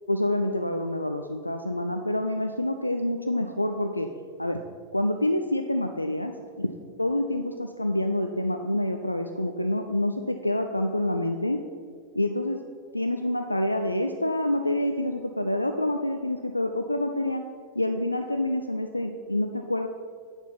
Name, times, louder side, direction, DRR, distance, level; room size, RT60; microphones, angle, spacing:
voice 1, 0.1-4.1 4.4-4.6 4.9-6.7 7.0-11.6 12.2-12.6 12.9-17.4 17.8-19.9, left 1 dB, 85° left, 6 dB, 0.4 m, -27 dB
9.8 x 4.5 x 5.8 m, 2.1 s
figure-of-eight pair, 90°, 0 cm